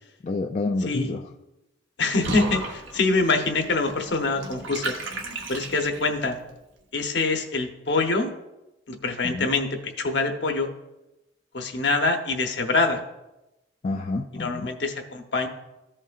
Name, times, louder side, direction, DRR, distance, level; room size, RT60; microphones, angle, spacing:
voice 1, 0.2-1.2 9.2-9.5 13.8-14.7, left 3 dB, 35° left, 3 dB, 0.3 m, -28 dB
voice 2, 0.9-1.2 2.0-5.0 5.5-6.4 6.9-8.3 8.9-9.7 10.0-10.7 11.5-13.0 14.3-15.5, left 3 dB, 60° left, 5 dB, 0.9 m, -25 dB
Water / Bathtub (filling or washing), 2.2-6.3, right 2 dB, 70° right, 1.2 m, -34 dB
14.5 x 5.5 x 2.4 m, 0.96 s
head